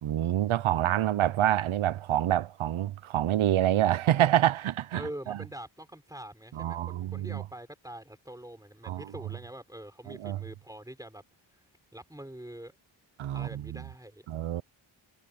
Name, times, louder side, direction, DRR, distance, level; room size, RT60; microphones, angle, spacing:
voice 1, 0.0-5.4 6.6-7.4 8.8-9.1 10.1-10.4 13.2-13.8 14.3-14.6, right 12 dB, 75° right, 0.8 m, -27 dB
voice 2, 4.9-11.2 11.5-11.6 11.9-12.8 13.3-14.2, right 1 dB, 5° right, 4.5 m, -44 dB
wide cardioid pair, 85°, 49 cm